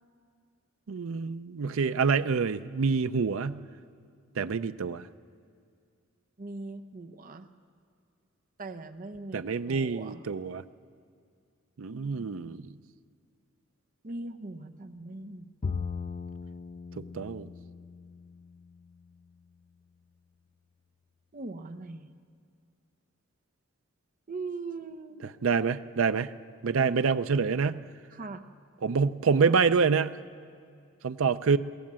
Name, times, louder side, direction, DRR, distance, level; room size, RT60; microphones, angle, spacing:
voice 1, 0.9-3.6 4.4-5.1 9.3-10.6 11.8-12.7 17.1-17.5 25.4-26.3 26.6-27.8 28.8-30.1 31.0-31.6, right 5 dB, 70° right, 12 dB, 0.5 m, -26 dB
voice 2, 6.4-7.5 8.6-10.2 11.9-12.8 14.0-15.9 21.3-22.1 24.3-25.3 26.8-27.1 28.1-28.4, right 3 dB, 40° right, 9 dB, 0.8 m, -41 dB
Bowed string instrument, 15.6-19.0, left 5 dB, 40° left, 0.5 m, -38 dB
22.5 x 16.5 x 7.5 m, 2.2 s
head